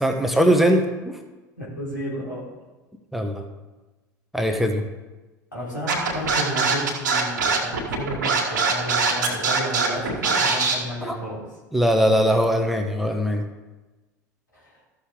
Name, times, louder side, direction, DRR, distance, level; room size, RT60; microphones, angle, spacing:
voice 1, 0.0-1.2 3.1-3.4 4.3-4.8 11.0-11.2 11.7-13.4, equal, ahead, 4 dB, 1.1 m, -21 dB
voice 2, 1.6-2.5 5.5-11.4 14.5-14.8, equal, 90° left, -7 dB, 3.8 m, -32 dB
Scratching (performance technique), 5.9-10.8, right 5 dB, 70° right, 1.8 m, -22 dB
14.0 x 6.4 x 3.7 m, 1.2 s
figure-of-eight pair, 75°, 10 cm